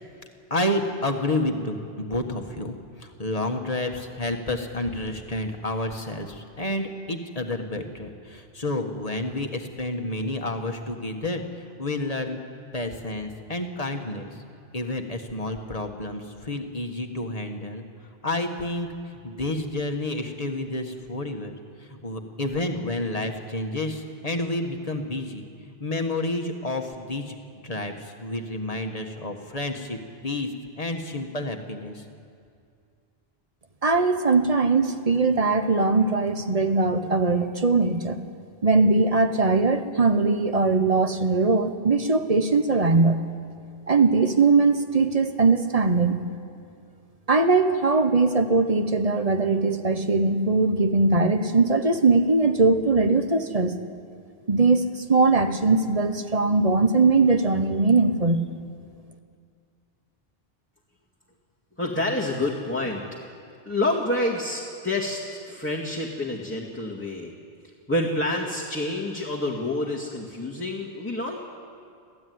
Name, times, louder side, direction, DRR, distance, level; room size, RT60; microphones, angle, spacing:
voice 1, 0.5-12.4 12.7-14.4 14.7-17.8 18.2-25.5 25.8-27.4 27.6-32.1, left 1 dB, 35° left, 4 dB, 1.7 m, -30 dB
voice 2, 33.8-38.2 38.6-43.2 43.9-46.2 47.3-53.8 54.5-58.4, right 3 dB, 40° right, 8 dB, 1.1 m, -20 dB
voice 3, 61.8-63.2 63.6-67.3 67.9-71.4, left 1 dB, 10° left, -4 dB, 2.1 m, -28 dB
24.5 x 15.0 x 9.6 m, 2.4 s
omnidirectional pair, 1.0 m